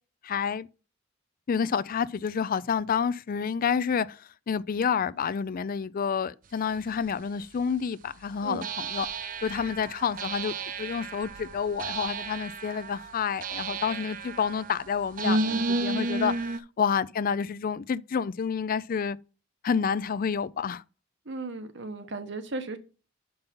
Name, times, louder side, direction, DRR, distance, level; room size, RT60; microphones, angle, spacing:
voice 1, 0.2-0.7 1.5-9.1 9.4-19.2 19.6-20.8, left 6 dB, 45° left, 0.4 m, -29 dB
sound 1, 7.0-7.1 8.6-16.6, right 2 dB, 45° right, 0.5 m, -32 dB
voice 2, 21.2-22.8, right 3 dB, 65° right, 1.2 m, -36 dB
6.9 x 5.4 x 5.3 m
head